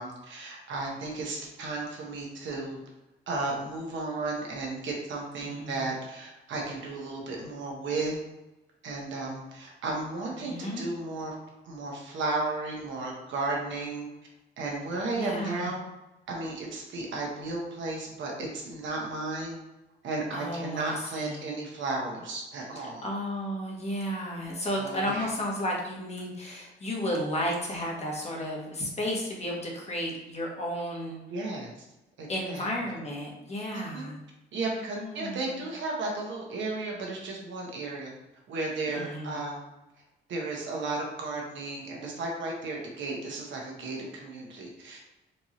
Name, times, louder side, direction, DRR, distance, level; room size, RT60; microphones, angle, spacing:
voice 1, 0.0-2.8 3.3-8.2 8.8-11.3 11.6-14.1 14.6-15.8 16.3-19.6 20.0-23.1 24.8-25.3 31.3-31.8 32.2-32.7 33.7-34.1 34.5-38.1 38.5-39.6 40.3-45.0, right 2 dB, 70° right, -1 dB, 1.2 m, -34 dB
voice 2, 5.4-5.9 10.4-10.8 15.1-15.7 20.3-21.4 23.0-31.2 32.3-34.2 35.0-35.6 38.9-39.3, equal, 35° left, -2 dB, 1.3 m, -33 dB
4.4 x 2.6 x 3.1 m, 0.98 s
cardioid pair, 90°, 20 cm